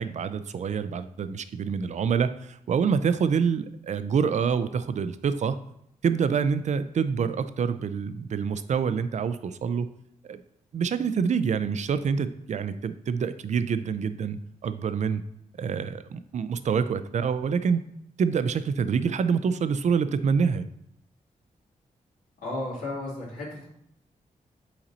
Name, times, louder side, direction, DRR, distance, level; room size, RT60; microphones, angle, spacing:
voice 1, 0.0-5.6 6.0-9.9 10.2-10.4 10.7-15.2 15.6-17.8 18.2-20.7, right 6 dB, 60° right, 12 dB, 0.4 m, -26 dB
voice 2, 22.4-23.7, left 2 dB, 90° left, -7 dB, 2.4 m, -34 dB
5.8 x 4.0 x 4.1 m, 0.74 s
cardioid pair, 85°, 14 cm